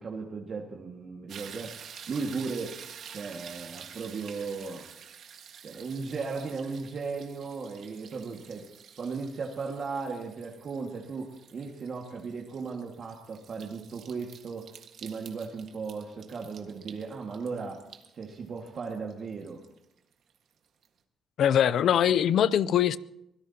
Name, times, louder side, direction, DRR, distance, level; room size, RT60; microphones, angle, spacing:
voice 1, 0.0-1.7 2.1-2.8 3.1-4.8 5.6-8.7 9.0-14.7 15.0-17.8 18.1-19.6, right 4 dB, 50° right, 1.9 m, -36 dB
sound 1, 1.3-20.4 20.8-20.9, right 8 dB, 65° right, 1.6 m, -49 dB
voice 2, 21.4-23.0, left 9 dB, 70° left, 0.5 m, -22 dB
24.0 x 16.5 x 2.9 m
cardioid pair, 90°, 0 cm